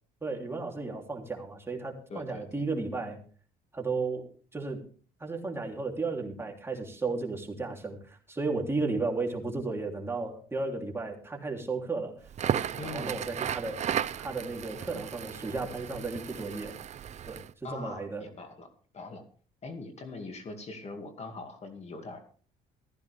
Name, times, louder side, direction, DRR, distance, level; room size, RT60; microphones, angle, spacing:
voice 1, 0.2-3.2 3.7-4.8 5.2-12.1 12.8-13.8 14.2-16.7 17.3-17.4 17.7-18.2, right 3 dB, 15° right, 1 dB, 3.3 m, -34 dB
voice 2, 2.1-2.6 12.8-13.1 17.6-18.7 18.9-19.2 19.6-22.2, left 3 dB, 40° left, 6 dB, 2.3 m, -42 dB
Crackle, 12.3-17.5, right 9 dB, 45° right, 0.6 m, -35 dB
15.0 x 14.5 x 3.4 m, 0.42 s
cardioid pair, 110°, 17 cm